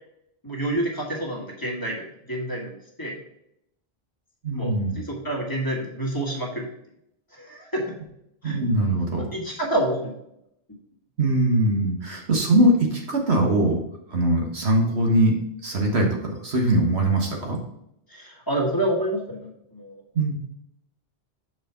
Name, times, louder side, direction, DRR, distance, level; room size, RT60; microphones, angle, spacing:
voice 1, 0.4-3.2 4.5-6.7 7.3-7.9 8.4-8.6 9.1-10.1 18.1-20.0, right 1 dB, 20° left, -2 dB, 1.6 m, -28 dB
voice 2, 4.4-5.0 8.4-9.3 11.2-13.8 14.1-16.1 16.4-17.6 20.2-20.4, right 1 dB, 85° right, 0 dB, 1.7 m, -21 dB
6.4 x 4.9 x 4.4 m, 0.77 s
omnidirectional pair, 1.1 m